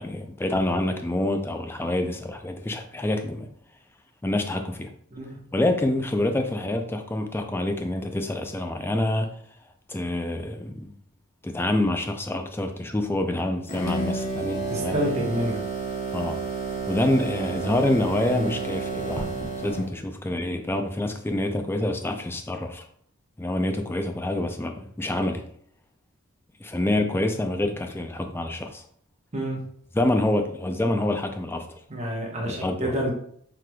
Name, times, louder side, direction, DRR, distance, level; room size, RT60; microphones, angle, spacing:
voice 1, 0.0-3.5 4.2-4.9 5.5-9.3 9.9-10.9 11.4-15.0 16.1-16.5 16.9-22.9 23.4-25.4 26.6-28.8 29.9-31.8 32.5-33.0, left 1 dB, 10° left, 5 dB, 0.4 m, -27 dB
sound 1, 13.7-19.9, right 4 dB, 40° left, 0.8 m, -30 dB
voice 2, 14.7-15.6 18.4-18.5 29.3-29.6 31.9-33.1, equal, 30° right, -1 dB, 1.0 m, -28 dB
5.7 x 3.2 x 2.2 m, 0.64 s
head